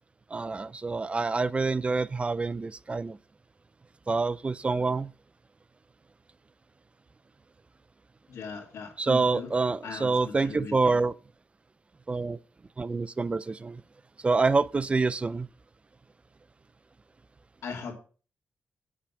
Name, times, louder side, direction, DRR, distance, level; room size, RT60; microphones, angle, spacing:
voice 1, 0.3-3.2 4.1-5.1 9.0-11.1 12.1-12.4 12.8-13.8 14.2-15.5, right 3 dB, 25° right, 0.5 m, -27 dB
voice 2, 8.3-9.5 9.8-11.0 17.6-17.9, left 5 dB, 80° left, 2.7 m, -39 dB
9.0 x 7.4 x 5.7 m
wide cardioid pair, 120°, 5 cm